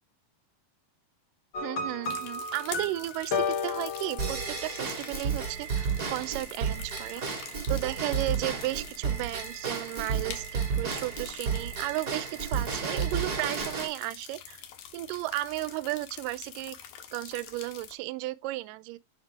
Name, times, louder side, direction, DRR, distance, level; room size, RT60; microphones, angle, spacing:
sound 1, 1.5-4.9, left 4 dB, 55° left, 1.3 m, -33 dB
voice 1, 1.6-7.2 7.7-14.6 14.9-16.8 17.1-19.0, right 17 dB, 85° right, 2.1 m, -34 dB
sound 2, 2.0-18.0, left 9 dB, 85° left, 2.7 m, -46 dB
Drum kit / Drum / Bell, 4.2-13.9, right 6 dB, 35° right, 2.1 m, -32 dB
7.4 x 5.8 x 3.3 m
omnidirectional pair, 3.8 m